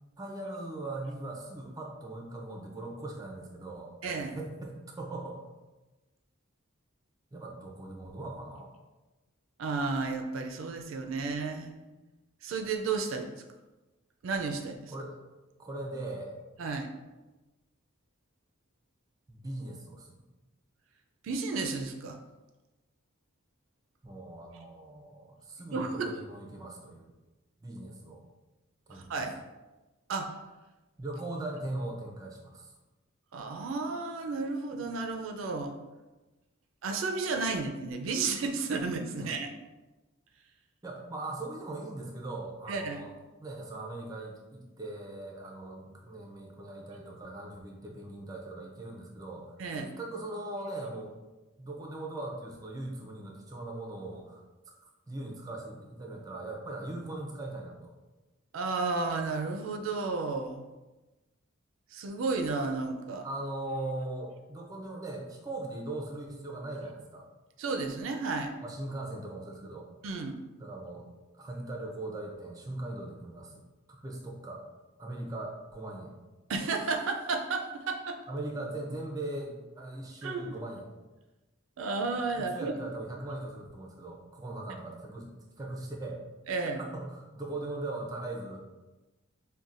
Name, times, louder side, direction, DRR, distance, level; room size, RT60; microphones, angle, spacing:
voice 1, 0.2-5.4 7.3-8.7 14.9-15.2 15.6-16.4 19.3-20.2 24.0-27.1 27.6-28.2 28.9-29.3 31.0-32.7 39.2-39.3 40.8-43.1 43.4-51.2 51.6-54.4 55.1-57.9 63.2-67.3 68.6-69.9 70.6-71.1 71.4-73.6 73.9-74.6 75.0-76.1 78.3-80.9 82.3-86.2 86.8-88.7, right 2 dB, 20° right, 0 dB, 0.5 m, -40 dB
voice 2, 4.0-4.4 9.6-11.8 12.4-13.3 14.2-14.9 16.6-16.9 21.2-22.2 25.7-26.1 28.9-29.4 30.1-30.4 33.3-35.8 36.8-39.5 42.7-43.0 49.6-49.9 58.5-60.6 61.9-63.3 67.6-68.5 70.0-70.4 76.5-78.2 80.2-80.6 81.8-82.7 86.5-86.8, right 4 dB, 75° right, 4 dB, 0.4 m, -32 dB
5.4 x 2.2 x 2.4 m, 1.1 s
head